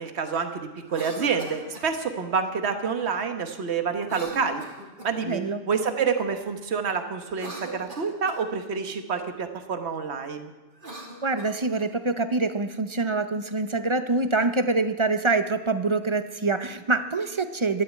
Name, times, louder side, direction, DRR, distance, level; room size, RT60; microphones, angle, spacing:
voice 1, 0.0-4.6 5.0-10.5, right 5 dB, 70° right, 7 dB, 1.5 m, -28 dB
Cough, 0.8-1.9 4.0-5.3 7.2-8.4 10.7-11.9, right 1 dB, 45° right, 2.7 m, -41 dB
voice 2, 5.3-5.6 11.2-17.8, right 3 dB, 30° right, 10 dB, 0.8 m, -25 dB
13.0 x 12.5 x 8.4 m, 1.1 s
omnidirectional pair, 1.2 m